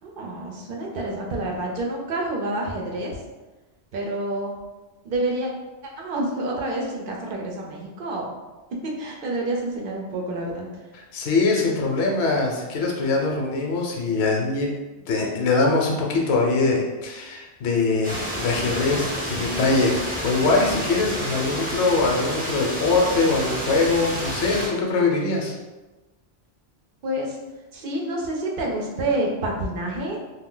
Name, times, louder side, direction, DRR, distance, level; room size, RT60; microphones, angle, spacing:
voice 1, 0.0-3.2 3.9-4.6 5.0-5.5 5.8-8.3 8.8-10.9 27.0-27.4 27.7-30.2, right 1 dB, 60° right, -1 dB, 0.7 m, -28 dB
voice 2, 11.1-14.7 15.1-25.5, left 3 dB, 70° left, -1 dB, 0.8 m, -22 dB
sound 1, 18.0-24.7, equal, 10° right, 0.5 m, -29 dB
2.4 x 2.2 x 3.7 m, 1.2 s
omnidirectional pair, 1.1 m